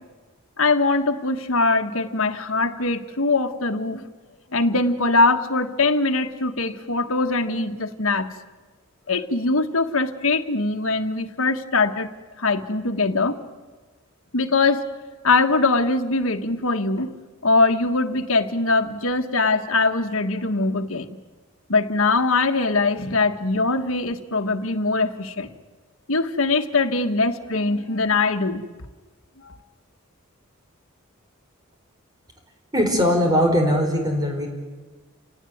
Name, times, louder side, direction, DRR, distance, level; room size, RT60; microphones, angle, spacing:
voice 1, 0.6-4.1 4.5-8.3 9.1-12.1 12.4-13.4 14.3-14.8 15.2-17.1 17.4-21.1 21.7-25.5 26.1-28.6 29.4-29.6, left 3 dB, 70° left, 6 dB, 1.5 m, -22 dB
voice 2, 32.7-34.5, equal, 20° right, 3 dB, 5.0 m, -20 dB
28.0 x 18.5 x 9.4 m, 1.3 s
head